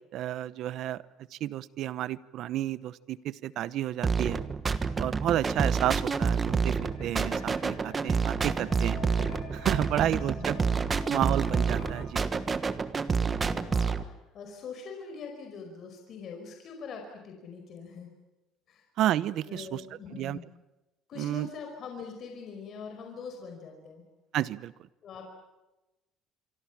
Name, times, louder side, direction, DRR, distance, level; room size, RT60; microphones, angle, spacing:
voice 1, 0.1-1.0 1.3-4.4 5.0-9.0 9.5-10.6 11.1-12.2 19.0-19.8 20.1-20.4 21.2-21.5 24.3-24.7, right 12 dB, 60° right, 18 dB, 0.9 m, -31 dB
sound 1, 4.0-14.0, right 5 dB, 25° right, 1.3 m, -28 dB
sound 2, 4.9-12.1, left 7 dB, 85° left, 5.1 m, -49 dB
voice 2, 10.0-10.5 13.2-18.1 18.7-18.8 19.4-20.4 21.1-24.0 25.0-25.2, left 5 dB, 50° left, 3 dB, 5.1 m, -43 dB
26.5 x 24.0 x 7.4 m, 1.0 s
cardioid pair, 130°, 0 cm